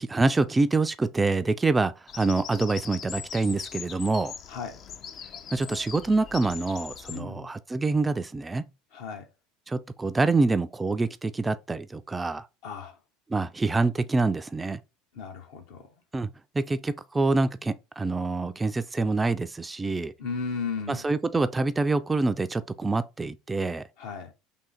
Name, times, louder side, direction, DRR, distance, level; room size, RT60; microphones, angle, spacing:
voice 1, 0.0-4.3 5.5-8.6 9.7-12.4 13.3-14.8 16.1-16.3 16.6-20.1 20.9-23.8, right 3 dB, 15° right, 0.4 m, -26 dB
Bird vocalization bird call bird song, 2.1-7.2, left 8 dB, 45° left, 0.5 m, -41 dB
voice 2, 4.5-4.8 7.1-7.5 8.9-9.3 12.6-13.0 15.1-15.9 20.2-21.1 24.0-24.3, left 5 dB, 70° left, 1.1 m, -35 dB
3.7 x 2.8 x 4.3 m
hypercardioid pair, 90°, 0 cm